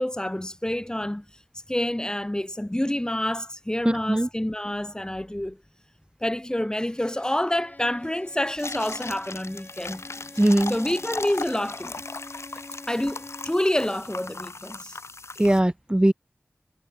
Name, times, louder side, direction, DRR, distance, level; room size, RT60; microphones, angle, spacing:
voice 1, 0.0-1.4 1.7-5.6 6.2-10.0 10.7-12.0 12.9-15.0, left 1 dB, 15° left, 5.2 m, -28 dB
voice 2, 3.8-4.3 10.4-10.8 15.4-16.1, right 1 dB, 20° right, 2.2 m, -20 dB
Bowed string instrument, 6.8-13.7, left 2 dB, 40° left, 7.2 m, -47 dB
sound 1, 8.5-15.6, left 3 dB, 85° left, 6.3 m, -38 dB
wide cardioid pair, 65°, 5 cm